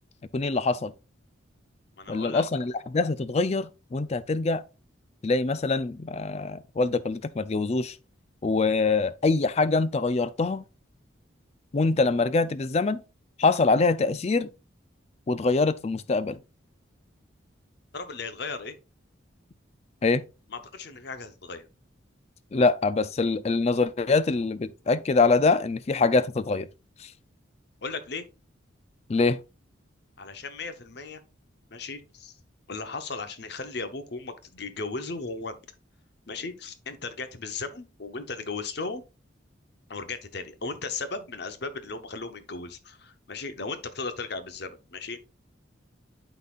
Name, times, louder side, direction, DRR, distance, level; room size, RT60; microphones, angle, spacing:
voice 1, 0.3-0.9 2.1-4.6 5.2-8.0 8.4-10.6 11.7-13.0 13.4-14.5 15.3-16.4 20.0-20.2 22.5-26.7 27.0-27.1 29.1-29.4, left 3 dB, 35° left, 0.4 m, -24 dB
voice 2, 2.0-2.6 17.9-18.7 20.5-21.7 27.8-28.2 30.2-31.2 31.7-32.3 32.7-35.6 36.3-39.0 39.9-45.2, left 4 dB, 55° left, 0.9 m, -36 dB
11.5 x 4.1 x 2.4 m
head